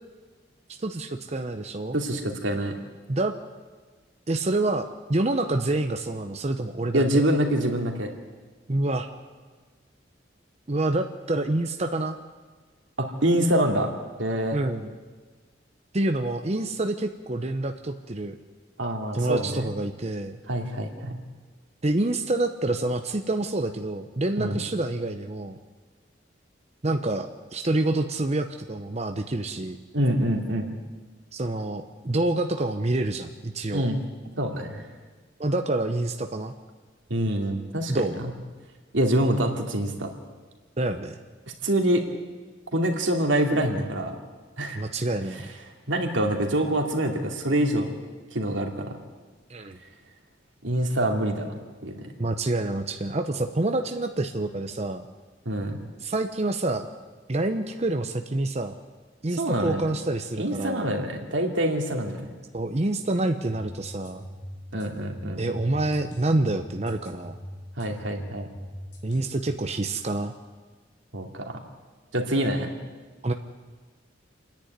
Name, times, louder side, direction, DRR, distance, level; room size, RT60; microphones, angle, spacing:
voice 1, 0.7-2.0 3.1-3.3 4.3-7.3 8.7-9.1 10.7-12.2 14.5-14.9 15.9-18.4 19.1-20.4 21.8-25.6 26.8-29.8 31.3-33.9 35.4-36.5 37.9-38.2 40.8-41.2 44.7-45.5 49.5-49.8 52.2-55.1 56.0-56.9 57.3-58.7 59.2-60.8 62.5-64.2 65.4-67.4 69.0-70.3 73.2-73.3, right 2 dB, 35° right, 6 dB, 0.8 m, -27 dB
voice 2, 1.9-2.7 6.9-8.1 13.0-13.9 14.2-14.6 18.8-19.7 20.5-21.2 24.4-24.6 29.9-30.7 33.7-34.0 34.4-34.8 37.1-38.1 38.9-40.1 41.6-42.0 42.7-44.1 44.6-44.8 45.9-47.9 48.3-49.0 50.6-51.5 51.8-52.0 55.5-55.8 59.4-59.9 60.4-62.3 64.7-65.4 67.8-68.5 71.1-71.5 72.1-72.8, right 1 dB, 90° right, 2 dB, 2.7 m, -25 dB
sound 1, 63.5-69.6, equal, 60° left, 3.8 m, -41 dB
27.5 x 10.5 x 9.5 m, 1.4 s
head